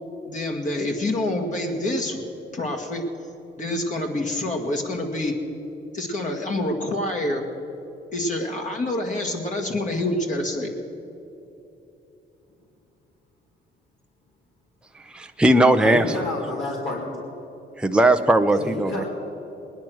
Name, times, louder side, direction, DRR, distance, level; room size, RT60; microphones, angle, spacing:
voice 1, 0.3-2.2 2.5-3.0 3.6-5.3 5.9-7.4 8.1-10.7, left 1 dB, 40° left, 1 dB, 1.9 m, -27 dB
voice 2, 15.1-16.0 17.8-19.0, right 1 dB, 5° right, 6 dB, 0.6 m, -18 dB
voice 3, 15.8-17.3 18.5-19.0, left 2 dB, 65° left, -4 dB, 2.6 m, -29 dB
19.5 x 10.5 x 6.3 m, 2.9 s
cardioid pair, 90°, 20 cm